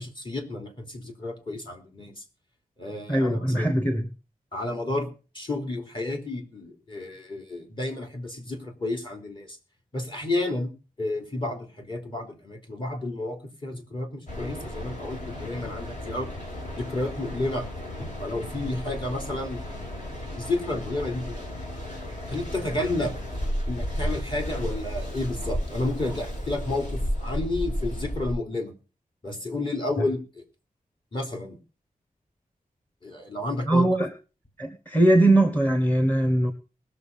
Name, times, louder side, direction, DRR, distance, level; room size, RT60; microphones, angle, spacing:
voice 1, 0.0-2.2 2.8-3.7 4.5-9.6 9.9-10.7 11.0-16.3 16.7-17.7 18.0-19.9 20.1-21.4 22.3-23.2 23.7-28.7 29.2-30.4 31.1-31.6 33.0-33.9, left 2 dB, 35° left, 3.6 m, -31 dB
voice 2, 3.1-4.1 33.7-34.1 34.6-36.5, right 1 dB, 10° left, 1.4 m, -21 dB
Mechanical fan, 14.3-28.3, equal, 50° left, 6.1 m, -33 dB
20.5 x 6.9 x 5.6 m
wide cardioid pair, 130°, 15 cm